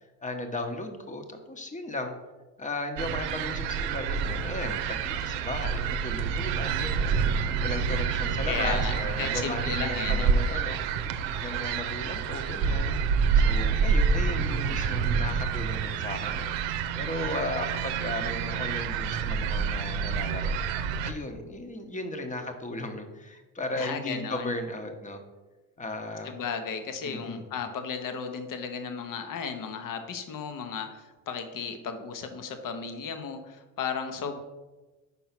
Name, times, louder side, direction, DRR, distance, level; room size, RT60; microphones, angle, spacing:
voice 1, 0.2-2.1 2.6-7.2 7.6-10.8 11.4-12.9 13.3-16.5 16.9-20.6 21.0-25.2 25.8-26.3 27.0-27.5, left 2 dB, 20° left, 6 dB, 1.0 m, -36 dB
sound 1, 3.0-21.1, right 6 dB, 85° right, 0.7 m, -28 dB
voice 2, 8.4-10.3 23.8-24.5 26.2-34.4, left 6 dB, 50° left, 7 dB, 1.1 m, -34 dB
5.7 x 4.6 x 5.9 m, 1.2 s
supercardioid pair, 95°, 42 cm